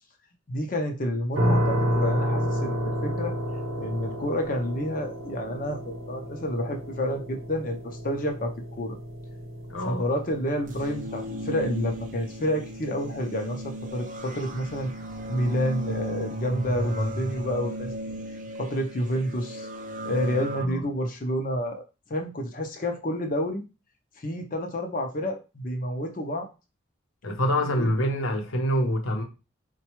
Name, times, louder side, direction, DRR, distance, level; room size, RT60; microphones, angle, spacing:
voice 1, 0.5-3.3 3.8-9.0 9.9-14.9 15.3-17.9 18.6-19.7 20.0-21.8 22.1-23.6 24.2-26.5 27.6-27.9, equal, 40° left, 0.6 m, -29 dB
sound 1, 1.4-14.2, equal, 85° right, 0.7 m, -31 dB
voice 2, 9.7-10.1 20.6-20.9 27.2-29.2, equal, 80° left, 0.7 m, -26 dB
sound 2, 10.6-20.7, right 1 dB, 40° right, 0.5 m, -35 dB
4.0 x 2.2 x 3.0 m
head